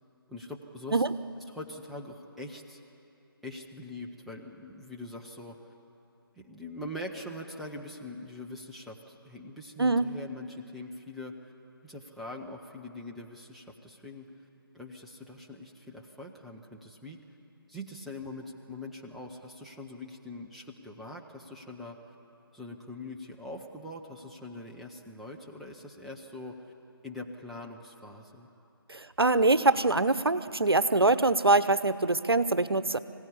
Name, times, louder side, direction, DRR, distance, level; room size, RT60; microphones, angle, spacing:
voice 1, 0.3-1.1 1.5-2.8 3.4-5.7 6.4-11.3 11.8-14.3 14.7-17.2 17.7-22.0 22.5-26.7 27.0-28.5, left 2 dB, ahead, -2 dB, 0.7 m, -43 dB
voice 2, 28.9-33.0, right 2 dB, 75° right, 13 dB, 1.0 m, -24 dB
24.5 x 16.5 x 9.9 m, 2.8 s
figure-of-eight pair, 150°, 13 cm